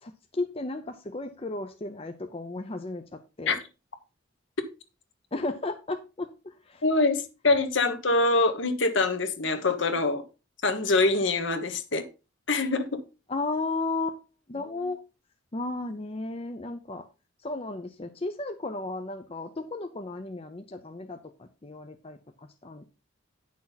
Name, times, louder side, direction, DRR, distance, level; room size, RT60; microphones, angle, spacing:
voice 1, 0.0-3.6 5.3-6.8 13.3-14.2 14.5-15.0 15.5-17.0 17.4-22.8, left 2 dB, 30° left, 7 dB, 0.6 m, -34 dB
voice 2, 6.8-10.2 10.6-12.0 12.5-13.0, left 3 dB, 65° left, 8 dB, 1.3 m, -24 dB
9.9 x 6.3 x 4.1 m, 0.30 s
head